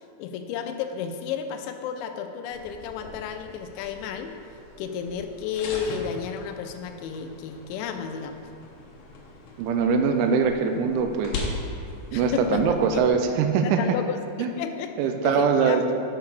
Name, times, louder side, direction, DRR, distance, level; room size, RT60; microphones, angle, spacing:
voice 1, 0.2-4.3 4.8-8.4 12.1-13.1 13.6-15.0 15.2-15.8, left 7 dB, 85° left, 6 dB, 3.0 m, -32 dB
sound 1, 2.5-13.1, left 3 dB, 70° left, 2.5 m, -40 dB
voice 2, 9.6-11.4 12.1-13.8 14.4-14.5 15.0-15.9, right 5 dB, 90° right, 5 dB, 3.0 m, -22 dB
8.1 x 5.8 x 6.5 m, 2.5 s
omnidirectional pair, 5.2 m